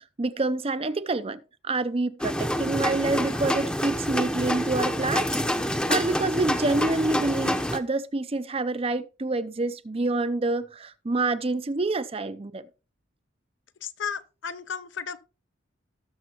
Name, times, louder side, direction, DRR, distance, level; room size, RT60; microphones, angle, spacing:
voice 1, 0.2-5.3 5.6-12.6, right 2 dB, 30° right, 0.6 m, -27 dB
sound 1, 2.2-7.8, equal, 5° left, 0.8 m, -27 dB
voice 2, 13.8-15.2, left 7 dB, 70° left, 0.8 m, -34 dB
18.0 x 6.6 x 3.0 m
head